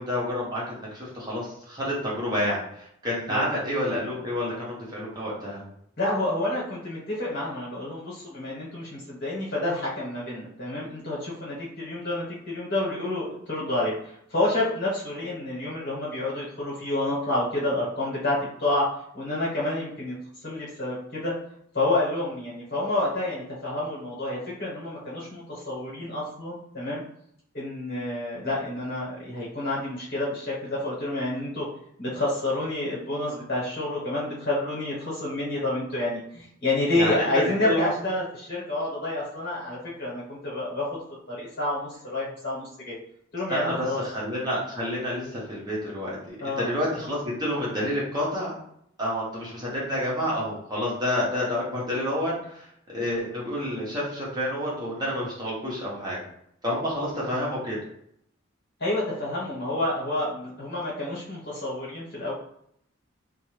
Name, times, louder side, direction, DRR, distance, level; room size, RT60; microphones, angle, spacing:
voice 1, 0.0-5.6 36.9-37.9 43.5-48.5 49.0-56.2 56.6-57.8, equal, 20° right, -6 dB, 0.8 m, -29 dB
voice 2, 6.0-18.9 19.1-20.1 20.4-21.3 21.7-27.0 27.5-31.7 32.0-41.0 41.3-43.0 43.3-44.0 46.4-46.7 58.8-62.3, left 2 dB, 60° left, -6 dB, 1.1 m, -29 dB
2.6 x 2.2 x 3.1 m, 0.70 s
head